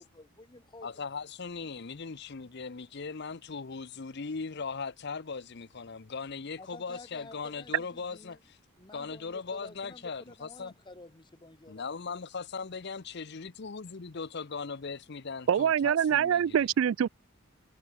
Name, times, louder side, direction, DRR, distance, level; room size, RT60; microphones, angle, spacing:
voice 1, 0.1-0.9 6.6-8.4 8.8-11.8 12.2-12.3, left 2 dB, 20° left, 1.4 m, -51 dB
voice 2, 0.8-8.6 8.9-10.7 11.7-16.4, left 5 dB, 50° left, 0.7 m, -39 dB
voice 3, 15.5-17.1, right 8 dB, 65° right, 0.3 m, -25 dB
head